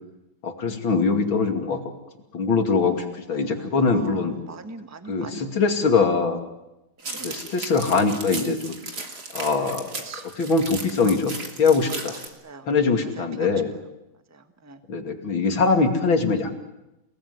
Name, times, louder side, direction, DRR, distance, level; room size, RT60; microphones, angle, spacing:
voice 1, 0.4-1.8 2.3-4.3 5.1-6.4 7.2-8.7 9.3-9.9 10.4-11.3 11.6-12.2 12.7-13.7 14.9-16.5, left 4 dB, 90° left, 5 dB, 3.4 m, -22 dB
voice 2, 3.3-5.4 7.0-7.3 10.0-10.3 12.4-12.7 13.2-13.6 14.3-14.8, right 3 dB, 10° right, 8 dB, 1.3 m, -41 dB
sound 1, 7.0-12.3, right 3 dB, 55° right, 3.6 m, -36 dB
29.5 x 19.0 x 9.5 m, 0.93 s
omnidirectional pair, 2.1 m